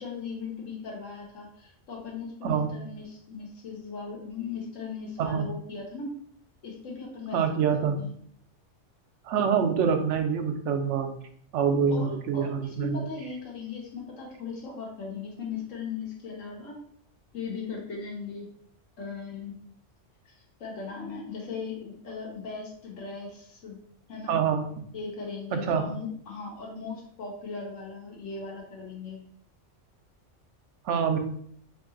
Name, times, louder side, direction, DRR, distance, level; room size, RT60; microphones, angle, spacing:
voice 1, 0.0-6.1 6.6-7.7 8.0-8.2 11.9-16.8 17.3-18.5 19.0-19.5 20.2-23.8 24.1-24.4 24.9-29.3, left 4 dB, 85° left, -1 dB, 1.4 m, -38 dB
voice 2, 7.3-8.0 9.3-11.1 11.5-13.1 24.3-24.6 25.5-25.8 30.9-31.2, right 7 dB, 75° right, 6 dB, 0.9 m, -25 dB
3.3 x 2.9 x 3.7 m, 0.64 s
omnidirectional pair, 1.3 m